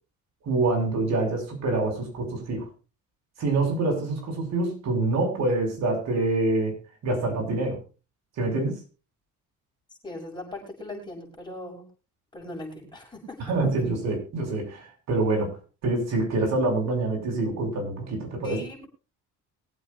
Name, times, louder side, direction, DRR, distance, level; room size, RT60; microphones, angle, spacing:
voice 1, 0.5-2.7 3.4-6.8 7.0-7.8 8.4-8.8 13.5-15.6 15.8-18.6, right 2 dB, 60° right, 1 dB, 6.8 m, -26 dB
voice 2, 10.0-11.9 12.3-13.4 18.4-18.9, left 1 dB, 15° left, -2 dB, 6.8 m, -39 dB
23.5 x 8.3 x 2.6 m, 0.33 s
cardioid pair, 140°, 30 cm